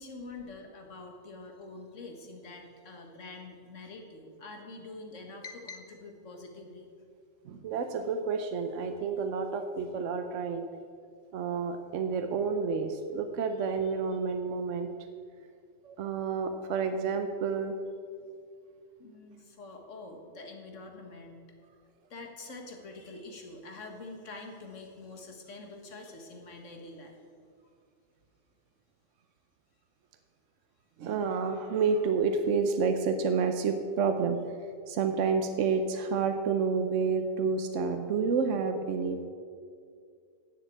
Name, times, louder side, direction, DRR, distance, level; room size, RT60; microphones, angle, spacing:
voice 1, 0.0-6.9 13.6-14.2 19.0-21.4 22.1-27.2, left 3 dB, 75° left, 3 dB, 1.9 m, -46 dB
voice 2, 7.4-10.7 11.3-14.9 15.8-17.8 31.0-34.4 34.9-39.3, right 5 dB, 75° right, 7 dB, 1.0 m, -29 dB
9.9 x 7.4 x 8.5 m, 2.3 s
omnidirectional pair, 1.3 m